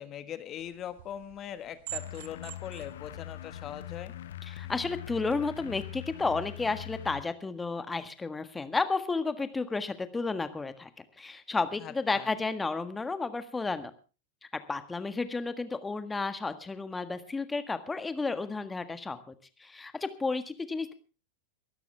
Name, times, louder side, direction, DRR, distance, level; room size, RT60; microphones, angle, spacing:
voice 1, 0.0-4.1 11.8-12.3, left 10 dB, 35° left, 12 dB, 1.5 m, -41 dB
sound 1, 0.6-4.8, right 16 dB, 55° right, 1.2 m, -47 dB
sound 2, 1.9-7.2, left 13 dB, 65° left, 1.0 m, -42 dB
voice 2, 4.4-13.9 14.4-20.9, left 3 dB, 10° left, 11 dB, 1.6 m, -32 dB
23.0 x 13.0 x 3.4 m, 0.33 s
figure-of-eight pair, 90°, 0 cm